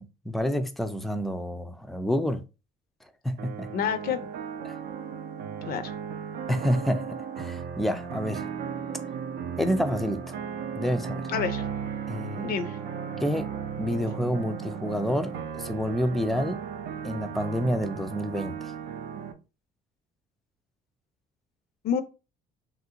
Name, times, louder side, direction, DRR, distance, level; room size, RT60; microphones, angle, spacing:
voice 1, 0.0-2.4 3.2-3.7 4.7-4.8 6.5-8.4 9.6-10.4 10.8-11.2 12.1-12.5 13.2-13.5 13.8-16.6 17.0-18.7, equal, ahead, 0.3 m, -28 dB
sound 1, 3.4-19.3, right 7 dB, 80° right, 0.5 m, -35 dB
voice 2, 3.7-4.2 5.7-5.9 11.3-11.9 12.4-12.8 21.8-22.0, left 8 dB, 65° left, 0.4 m, -29 dB
3.1 x 2.5 x 2.8 m
cardioid pair, 110°, 17 cm